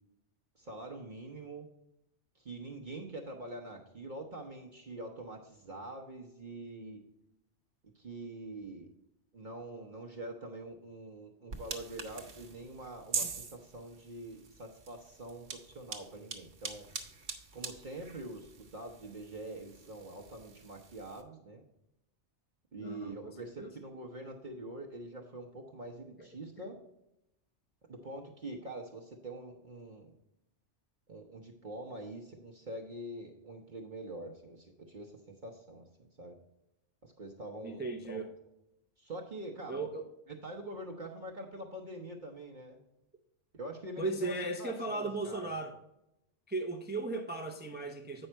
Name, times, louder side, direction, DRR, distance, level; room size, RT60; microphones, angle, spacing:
voice 1, 0.6-1.7 2.3-7.0 7.9-8.9 9.3-16.9 17.5-21.6 22.7-26.8 27.9-30.1 31.1-36.4 37.0-38.2 39.0-39.8 40.4-42.8 43.5-45.6, right 1 dB, 45° right, 0 dB, 0.9 m, -45 dB
sound 1, 11.5-21.2, right 5 dB, 65° right, 1.3 m, -44 dB
voice 2, 22.8-23.7 26.2-26.3 26.6-26.7 37.6-38.3 39.7-40.1 44.0-45.7 46.5-48.3, right 3 dB, 10° right, 5 dB, 0.5 m, -37 dB
8.9 x 5.5 x 4.4 m, 0.87 s
omnidirectional pair, 1.2 m